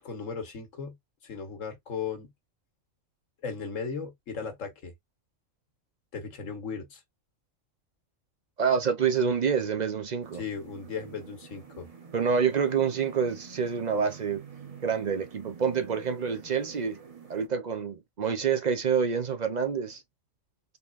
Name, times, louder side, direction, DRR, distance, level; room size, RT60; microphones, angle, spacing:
voice 1, 0.0-1.0 1.2-2.3 3.4-4.9 6.1-7.0 10.3-11.9, left 5 dB, 70° left, 1.7 m, -36 dB
voice 2, 8.6-10.4 12.1-14.4 14.8-17.0 17.3-20.0, right 6 dB, 45° right, 0.6 m, -27 dB
sound 1, 10.2-17.5, right 6 dB, 30° right, 0.9 m, -48 dB
3.9 x 3.6 x 2.4 m
omnidirectional pair, 1.4 m